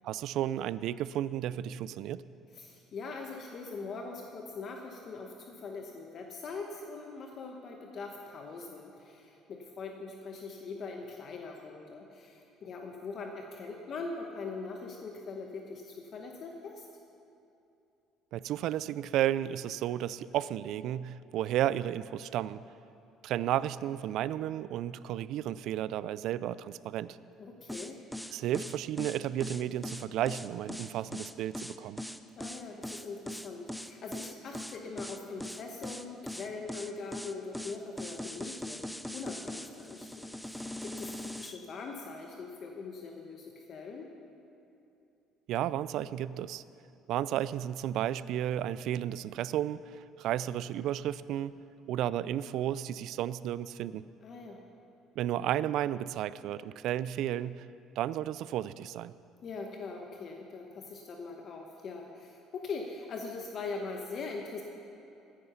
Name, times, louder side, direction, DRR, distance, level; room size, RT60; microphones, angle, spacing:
voice 1, 0.0-2.2 18.3-22.6 23.2-27.2 28.3-32.0 45.5-46.6 47.1-51.6 51.9-54.0 55.2-57.7 58.0-59.1, right 11 dB, 65° right, 17 dB, 0.3 m, -33 dB
voice 2, 2.5-16.9 27.4-28.0 32.4-44.1 54.2-54.6 59.4-64.6, left 4 dB, 45° left, 2 dB, 1.1 m, -42 dB
sound 1, 27.7-41.6, left 1 dB, ahead, 0.5 m, -40 dB
14.5 x 10.0 x 5.7 m, 2.8 s
cardioid pair, 120°, 0 cm